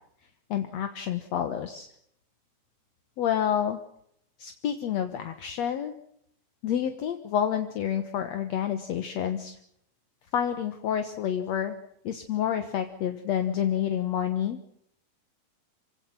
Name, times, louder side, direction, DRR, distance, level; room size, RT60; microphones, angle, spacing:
voice 1, 0.5-1.9 3.2-3.8 4.4-6.0 6.6-9.6 10.3-11.7 12.0-14.6, left 9 dB, 65° left, 8 dB, 2.5 m, -28 dB
26.0 x 17.5 x 7.5 m, 0.71 s
omnidirectional pair, 3.4 m